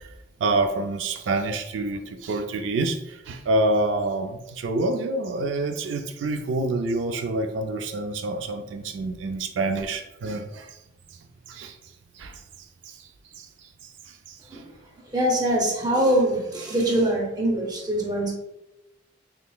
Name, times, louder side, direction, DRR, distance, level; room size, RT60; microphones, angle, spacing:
voice 1, 0.4-3.0 3.3-10.7 11.5-11.7 12.2-12.3 14.3-14.4, right 2 dB, 85° right, 6 dB, 0.3 m, -27 dB
voice 2, 15.1-18.3, right 1 dB, 20° right, -1 dB, 0.7 m, -23 dB
3.7 x 3.4 x 2.3 m, 0.92 s
head